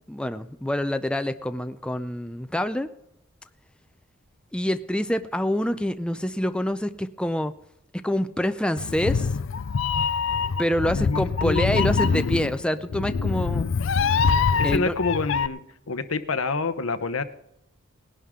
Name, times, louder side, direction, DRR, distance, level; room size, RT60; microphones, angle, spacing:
voice 1, 0.1-2.9 4.5-7.5 8.0-9.3 10.6-13.7 14.6-14.9, left 1 dB, 5° left, 9 dB, 0.4 m, -26 dB
Meow, 8.8-15.5, left 5 dB, 65° left, 0.4 m, -24 dB
voice 2, 10.9-12.0 14.6-15.6 15.9-17.2, left 3 dB, 85° left, 11 dB, 1.0 m, -27 dB
19.5 x 11.0 x 3.7 m, 0.83 s
head